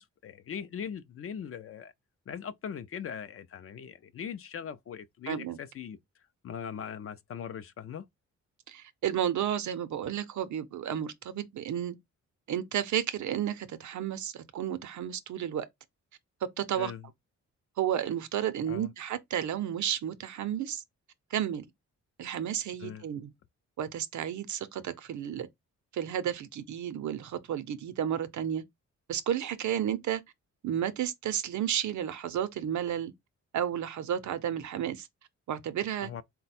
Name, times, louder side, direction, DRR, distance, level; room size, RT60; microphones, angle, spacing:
voice 1, 0.0-1.9 2.3-6.0 6.4-8.1 16.7-17.1 18.7-18.9 22.8-23.0 36.0-36.2, left 8 dB, 50° left, 0.4 m, -40 dB
voice 2, 5.3-5.6 8.7-12.0 12.5-15.7 16.4-16.9 17.8-20.8 21.3-21.6 22.2-23.3 23.8-25.5 25.9-28.6 29.1-30.2 30.6-33.1 33.5-35.1 35.5-36.1, right 10 dB, 70° right, 0.6 m, -32 dB
4.0 x 2.2 x 4.1 m
wide cardioid pair, 125°, 30 cm